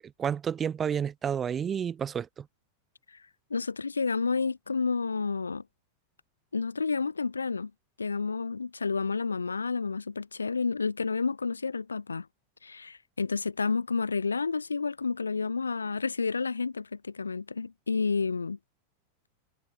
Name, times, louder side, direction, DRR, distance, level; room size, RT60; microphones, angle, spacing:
voice 1, 0.2-2.5, right 8 dB, 20° right, 1.2 m, -30 dB
voice 2, 3.5-5.6 6.5-7.7 8.0-12.3 12.6-18.6, left 4 dB, 75° left, 0.8 m, -30 dB
figure-of-eight pair, 90°, 0 cm